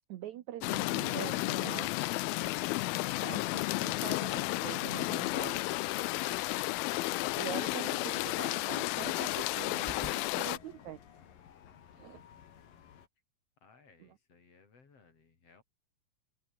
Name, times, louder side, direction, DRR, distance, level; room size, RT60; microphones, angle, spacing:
voice 1, 0.1-1.9 3.2-5.6 7.4-11.0 12.0-12.2 14.0-14.1, right 12 dB, 75° right, 1.7 m, -44 dB
sound 1, 0.6-10.6, left 21 dB, 80° left, 2.2 m, -32 dB
sound 2, 2.4-13.1, left 8 dB, 60° left, 4.0 m, -55 dB
sound 3, 9.7-10.6, left 1 dB, 10° left, 2.0 m, -54 dB
voice 2, 13.6-15.6, left 4 dB, 40° left, 4.3 m, -62 dB
open air
omnidirectional pair, 4.7 m